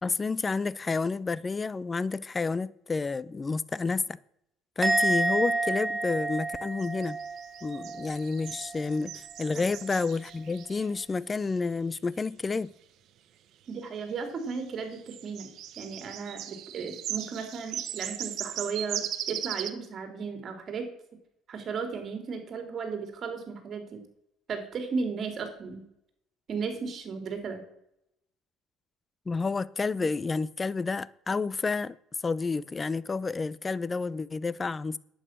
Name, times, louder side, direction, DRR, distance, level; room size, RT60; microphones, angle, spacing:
voice 1, 0.0-4.2 4.8-7.2 7.6-12.7 29.3-32.0 32.2-35.0, left 4 dB, 25° left, 0.6 m, -30 dB
Musical instrument, 4.8-8.2 8.5-8.9, right 2 dB, 20° right, 2.9 m, -29 dB
sound 1, 6.8-11.0 14.5-14.6 14.9-19.7, right 11 dB, 60° right, 1.2 m, -38 dB
voice 2, 13.7-20.9 21.5-24.0 24.5-25.8 26.5-27.6 30.0-30.1, right 5 dB, 45° right, 3.6 m, -35 dB
11.0 x 8.8 x 6.2 m
supercardioid pair, 105°, 0 cm